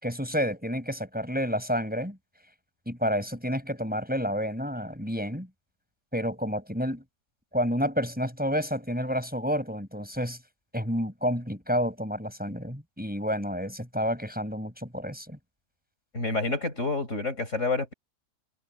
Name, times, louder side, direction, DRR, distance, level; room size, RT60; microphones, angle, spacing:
voice 1, 0.0-2.2 2.9-5.5 6.1-7.0 7.5-10.4 10.7-15.4, equal, 5° right, 6.1 m, -29 dB
voice 2, 16.1-17.9, left 3 dB, 60° left, 6.0 m, -28 dB
omnidirectional pair, 1.4 m